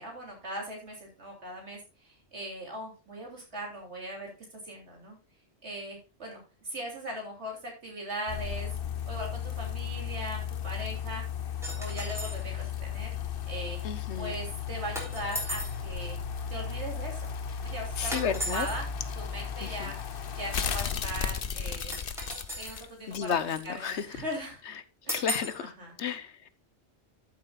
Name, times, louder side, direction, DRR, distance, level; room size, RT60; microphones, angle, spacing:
voice 1, 0.0-4.3 4.6-5.2 5.6-8.7 9.1-11.2 11.8-13.1 13.4-13.8 14.1-16.2 16.5-17.3 17.6-18.9 19.2-20.0 20.3-21.9 22.6-23.3 23.6-24.6 25.1-25.3 25.8-25.9, right 1 dB, 80° right, -1 dB, 3.5 m, -39 dB
sound 1, 8.3-23.9 24.3-24.4, left 7 dB, 55° left, 1.0 m, -35 dB
sound 2, 11.6-12.4 15.0-15.8 18.1-18.8 21.9-22.9 25.1-25.6, equal, ahead, 3.4 m, -36 dB
voice 2, 13.8-14.3 18.0-18.7 19.6-19.9 23.1-24.2 24.7-24.8 25.1-25.7 26.0-26.5, left 7 dB, 80° left, 13 dB, 1.2 m, -32 dB
13.5 x 7.8 x 2.4 m, 0.30 s
omnidirectional pair, 1.1 m